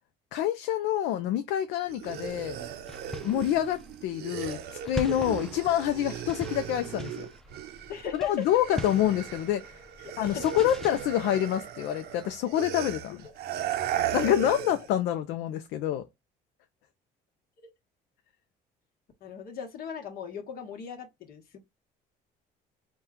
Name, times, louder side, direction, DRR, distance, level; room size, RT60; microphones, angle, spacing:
voice 1, 0.3-2.6 3.2-7.3 8.1-9.8 10.2-13.2 14.1-16.0, left 11 dB, 85° left, 0.4 m, -27 dB
sound 1, 1.9-8.1 8.4-14.9, right 10 dB, 75° right, 0.6 m, -37 dB
sound 2, 2.0-11.0, left 1 dB, 5° left, 0.5 m, -42 dB
voice 2, 7.9-8.4 10.0-10.4 17.6-17.7 19.2-21.6, left 8 dB, 60° left, 1.1 m, -38 dB
4.2 x 2.3 x 3.6 m
cardioid pair, 110°, 17 cm